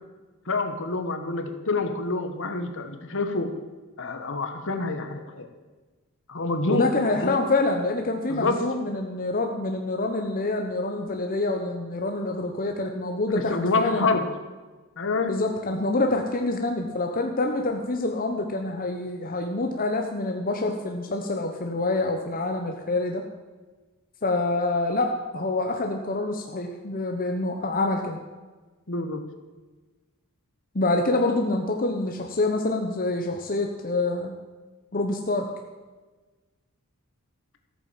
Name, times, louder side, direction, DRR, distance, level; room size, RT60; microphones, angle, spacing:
voice 1, 0.4-3.5 4.0-5.5 6.3-6.9 7.1-7.4 8.3-8.6 13.3-14.3 15.0-15.3 28.9-29.2, left 3 dB, 60° left, 6 dB, 1.5 m, -27 dB
voice 2, 6.7-14.1 15.3-23.2 24.2-28.2 30.7-34.3 34.9-35.5, left 2 dB, 40° left, 3 dB, 1.1 m, -26 dB
14.5 x 8.8 x 7.5 m, 1.3 s
head